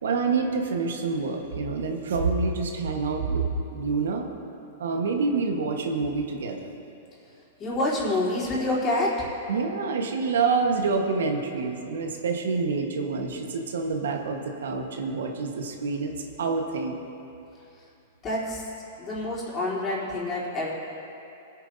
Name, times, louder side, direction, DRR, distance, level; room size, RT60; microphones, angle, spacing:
voice 1, 0.0-4.3 4.8-6.7 9.5-16.1 16.4-17.0, right 4 dB, 85° right, 2 dB, 1.3 m, -27 dB
voice 2, 7.6-9.3 18.2-18.7 19.0-20.7, left 1 dB, 25° left, -6 dB, 3.3 m, -27 dB
26.5 x 8.9 x 2.7 m, 2.7 s
hypercardioid pair, 135°, 0 cm